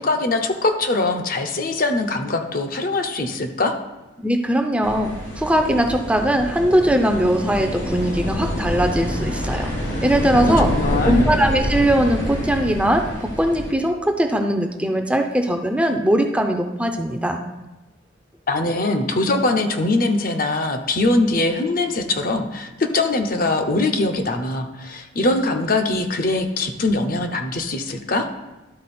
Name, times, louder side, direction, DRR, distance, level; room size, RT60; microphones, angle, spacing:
voice 1, 0.0-3.8 10.3-11.3 18.5-28.3, left 2 dB, 50° left, 5 dB, 0.7 m, -22 dB
voice 2, 4.2-9.7 10.0-10.7 11.0-17.4, right 1 dB, 5° right, 4 dB, 0.5 m, -20 dB
sound 1, 4.8-13.7, equal, 80° left, 2.6 m, -26 dB
12.0 x 4.2 x 4.2 m, 1.0 s
head